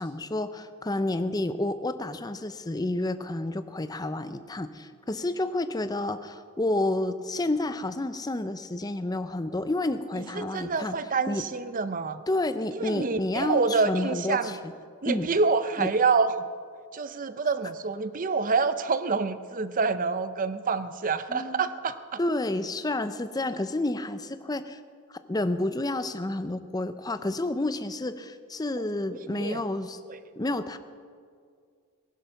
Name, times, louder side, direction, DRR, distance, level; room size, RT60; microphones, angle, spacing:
voice 1, 0.0-10.9 11.3-11.4 12.3-14.7 15.0-15.3 15.8-15.9 21.3-21.7 22.2-24.8 25.1-30.0 30.4-30.8, left 2 dB, 15° left, 11 dB, 0.5 m, -30 dB
voice 2, 10.4-12.2 12.8-14.6 15.0-16.5 16.9-22.2 29.3-29.6 30.1-30.2, right 4 dB, 35° right, 12 dB, 0.6 m, -27 dB
19.0 x 11.0 x 5.8 m, 2.1 s
head